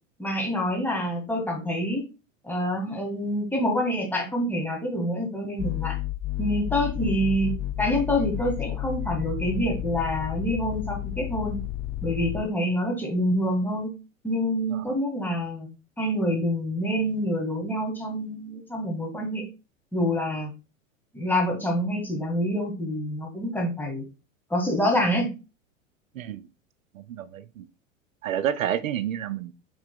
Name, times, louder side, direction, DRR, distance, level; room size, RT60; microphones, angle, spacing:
voice 1, 0.2-2.1 2.4-6.0 6.4-7.5 7.8-11.6 12.0-13.9 14.2-15.7 16.0-19.4 19.9-20.5 21.1-24.0 24.5-25.3, equal, 5° left, 1.8 m, -26 dB
sound 1, 5.6-12.4, left 13 dB, 30° left, 0.7 m, -31 dB
voice 2, 26.1-26.5 26.9-27.7 28.2-29.5, right 10 dB, 90° right, 0.5 m, -30 dB
6.1 x 3.8 x 2.2 m
hypercardioid pair, 95°, 39 cm